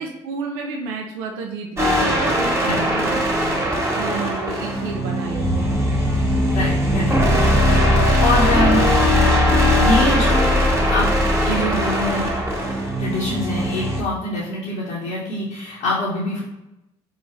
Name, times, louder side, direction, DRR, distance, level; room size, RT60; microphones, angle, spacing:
voice 1, 0.0-3.2 4.0-5.7, right 4 dB, 85° right, 2 dB, 0.5 m, -31 dB
sound 1, 1.8-14.0, equal, 20° right, 1.2 m, -21 dB
sound 2, 5.4-12.6, left 1 dB, 5° left, 1.1 m, -21 dB
voice 2, 6.5-8.8 9.8-11.1 11.4-12.3 13.0-16.4, left 1 dB, 75° left, -6 dB, 0.9 m, -25 dB
3.8 x 3.0 x 3.1 m, 0.92 s
hypercardioid pair, 50°, 14 cm